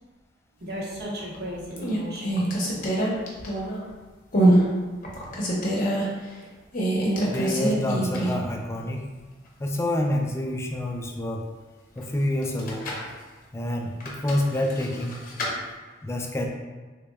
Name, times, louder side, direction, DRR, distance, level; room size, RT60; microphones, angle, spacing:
voice 1, 0.6-2.9, equal, 55° right, -4 dB, 0.8 m, -35 dB
sound 1, 1.0-1.4 1.7-3.9 4.3-4.6 5.0-6.0 6.7-8.5 8.8-8.9 12.4-13.1 14.0-15.5, right 1 dB, 45° left, 0.7 m, -24 dB
voice 2, 7.3-9.0 9.6-11.4 12.0-12.9 13.5-15.2 16.0-16.5, left 1 dB, 15° left, 2 dB, 0.3 m, -27 dB
3.5 x 3.1 x 2.2 m, 1.3 s
head